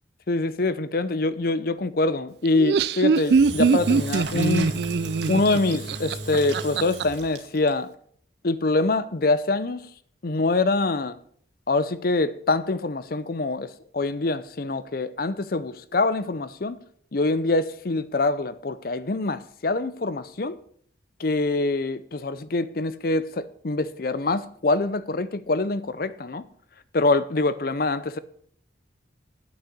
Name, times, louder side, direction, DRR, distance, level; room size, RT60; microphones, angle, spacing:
voice 1, 0.3-4.7 5.3-7.9 8.4-9.8 10.2-11.2 11.7-16.8 17.1-20.6 21.2-26.4 26.9-28.2, left 2 dB, 50° left, 0.6 m, -25 dB
Laughter, 2.5-7.0, right 5 dB, 60° right, 0.4 m, -22 dB
Engine / Drill, 3.2-7.7, right 2 dB, 75° right, 1.9 m, -34 dB
8.7 x 6.3 x 7.9 m
head